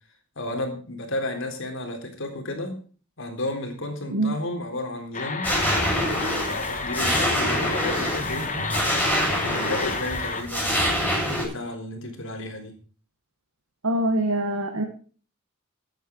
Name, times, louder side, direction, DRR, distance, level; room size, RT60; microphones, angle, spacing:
voice 1, 0.4-2.8 3.2-5.5 5.9-8.5 9.2-11.0 11.2-12.7, left 1 dB, 65° left, 5 dB, 3.7 m, -33 dB
sound 1, 5.1-10.4, left 4 dB, 35° left, 1.9 m, -31 dB
sound 2, 5.4-11.4, equal, 5° left, 7.3 m, -25 dB
voice 2, 13.8-14.8, right 1 dB, 75° right, 4 dB, 1.7 m, -24 dB
15.0 x 9.2 x 4.7 m, 0.40 s
head